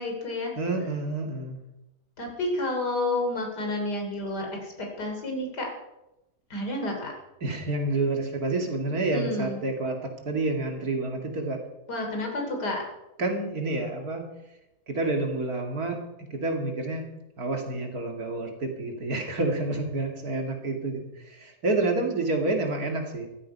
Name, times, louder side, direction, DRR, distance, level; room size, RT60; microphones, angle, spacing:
voice 1, 0.0-0.5 2.2-4.5 5.0-5.7 6.5-7.1 9.1-9.6 11.9-12.8, left 2 dB, 80° left, 2 dB, 3.8 m, -30 dB
voice 2, 0.6-1.6 7.4-11.6 13.2-14.2 14.9-17.1 17.4-23.3, right 2 dB, 65° right, 2 dB, 2.8 m, -29 dB
14.5 x 14.0 x 5.5 m, 0.93 s
omnidirectional pair, 1.7 m